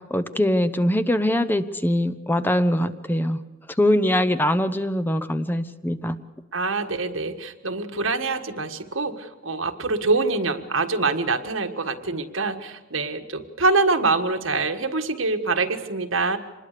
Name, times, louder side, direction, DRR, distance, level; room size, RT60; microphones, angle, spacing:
voice 1, 0.1-3.4 3.8-6.2, left 1 dB, 10° left, 12 dB, 0.8 m, -22 dB
voice 2, 6.5-16.4, right 3 dB, 80° right, 6 dB, 1.7 m, -25 dB
26.0 x 20.5 x 6.8 m, 1.2 s
head